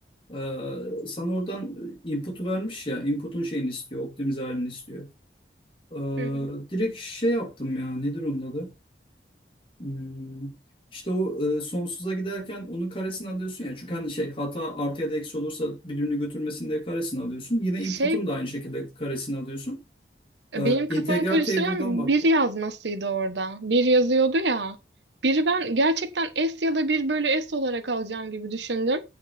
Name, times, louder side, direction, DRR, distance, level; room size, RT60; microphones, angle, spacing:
voice 1, 0.3-5.1 5.9-8.7 9.8-10.5 10.9-19.8 20.5-22.1, equal, 30° left, 2.9 m, -30 dB
voice 2, 6.2-6.5 17.9-18.2 20.5-24.8 25.2-29.0, right 2 dB, 80° right, 1.2 m, -24 dB
8.9 x 5.7 x 5.8 m
head